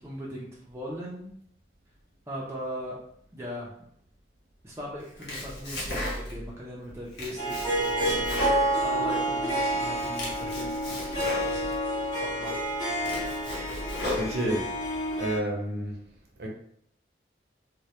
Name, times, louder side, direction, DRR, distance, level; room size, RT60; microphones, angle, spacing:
voice 1, 0.0-1.3 2.3-3.0 3.3-3.7 4.6-8.5 8.8-11.7 12.4-12.6, equal, 15° right, -5 dB, 0.4 m, -39 dB
Domestic sounds home sounds, 5.0-6.5 6.9-9.4 9.8-11.8 12.3-12.4 12.8-14.8, left 1 dB, 70° left, 0.8 m, -35 dB
Harp, 7.4-15.4, right 1 dB, 25° left, 0.6 m, -29 dB
voice 2, 14.1-14.7 15.1-16.0 16.4-16.5, right 1 dB, 60° right, -1 dB, 0.6 m, -30 dB
2.1 x 2.1 x 2.7 m, 0.69 s
head